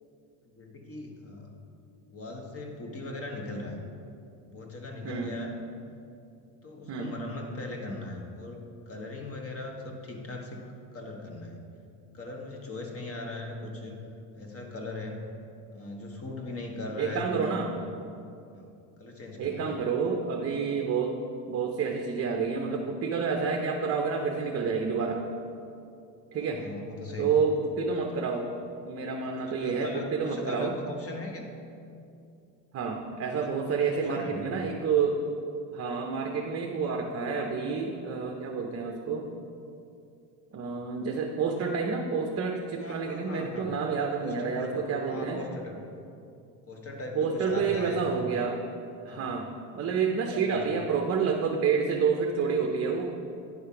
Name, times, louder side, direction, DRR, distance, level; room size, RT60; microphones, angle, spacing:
voice 1, 0.4-1.5 2.1-3.8 4.5-5.6 6.6-10.6 10.9-11.6 12.1-14.0 14.3-15.2 15.7-17.7 18.5-19.8 26.3-27.3 29.5-31.5 33.7-34.4 42.8-43.7 44.2-44.8 45.1-45.8 46.7-48.1 49.1-49.3 50.3-50.8, left 2 dB, 30° left, 2 dB, 1.2 m, -39 dB
voice 2, 5.0-5.4 6.9-7.1 17.0-17.7 19.4-21.2 21.5-25.2 26.3-26.6 27.2-28.5 28.8-30.8 32.7-35.2 35.7-39.3 40.5-45.4 47.1-48.6 49.1-53.1, right 5 dB, 35° right, 2 dB, 0.6 m, -29 dB
9.7 x 3.4 x 5.6 m, 2.5 s
supercardioid pair, 105°, 45 cm